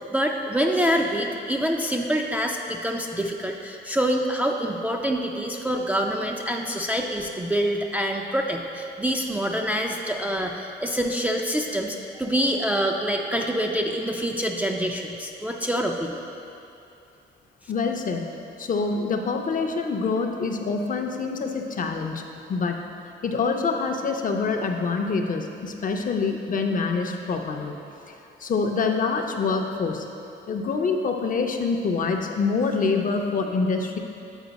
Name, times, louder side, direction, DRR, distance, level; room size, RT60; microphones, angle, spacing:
voice 1, 0.1-16.2, equal, 10° right, 1 dB, 0.4 m, -26 dB
voice 2, 17.7-18.2 18.6-22.2 22.5-22.8 23.2-27.8 28.4-30.1 30.5-34.0, left 4 dB, 45° left, 3 dB, 0.6 m, -25 dB
8.1 x 4.3 x 4.1 m, 2.7 s
cardioid pair, 90°, 20 cm